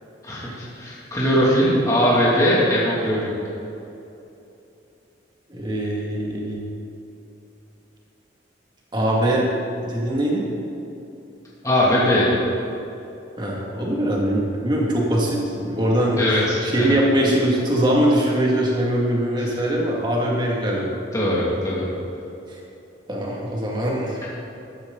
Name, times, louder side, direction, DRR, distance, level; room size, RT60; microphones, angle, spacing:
voice 1, 0.2-3.3 11.6-12.3 16.2-16.8 19.4-19.5 21.1-21.8 24.2-24.3, equal, 15° left, -7 dB, 2.6 m, -20 dB
voice 2, 5.5-6.6 8.9-9.5 9.8-10.5 13.4-20.9 23.1-24.3, right 1 dB, 25° right, -3 dB, 2.3 m, -22 dB
14.0 x 12.0 x 4.0 m, 2.8 s
head